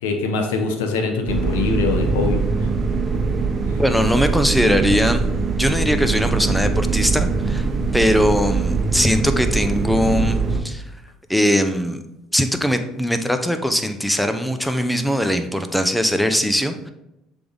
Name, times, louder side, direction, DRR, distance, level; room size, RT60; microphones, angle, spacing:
voice 1, 0.0-2.7 3.7-3.8, left 4 dB, 85° left, 5 dB, 0.8 m, -23 dB
sound 1, 1.3-10.6, right 4 dB, 35° right, 0.9 m, -22 dB
voice 2, 3.8-5.3 5.6-7.7 7.9-10.8 11.3-12.0 12.3-16.9, equal, 5° left, 8 dB, 0.7 m, -20 dB
6.7 x 3.5 x 3.9 m, 0.88 s
hypercardioid pair, 70°, 0 cm